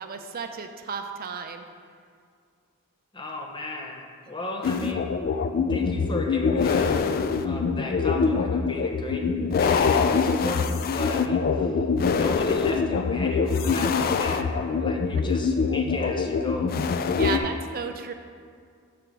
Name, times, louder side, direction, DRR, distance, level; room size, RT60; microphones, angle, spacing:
voice 1, 0.0-1.7 17.1-18.1, right 6 dB, 40° right, 6 dB, 0.5 m, -33 dB
voice 2, 3.1-5.1 5.7-7.1 7.4-16.8 17.2-17.5, left 2 dB, 20° left, 2 dB, 0.7 m, -35 dB
sound 1, 4.6-17.4, left 5 dB, 40° left, 0.3 m, -24 dB
8.9 x 3.4 x 6.1 m, 2.2 s
head